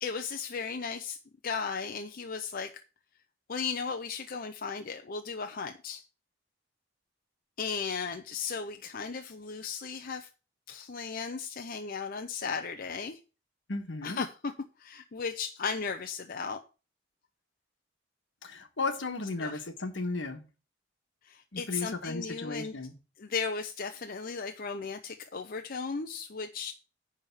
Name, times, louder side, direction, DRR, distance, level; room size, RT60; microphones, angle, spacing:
voice 1, 0.0-1.2 1.4-2.8 3.5-6.0 7.6-10.3 10.7-13.2 14.0-14.5 14.8-16.6 19.4-19.6 21.2-22.7 23.2-26.7, left 5 dB, 50° left, 0.6 m, -36 dB
voice 2, 13.7-14.2 18.4-20.4 21.5-22.9, left 3 dB, 75° left, 1.4 m, -35 dB
10.0 x 3.5 x 6.9 m
head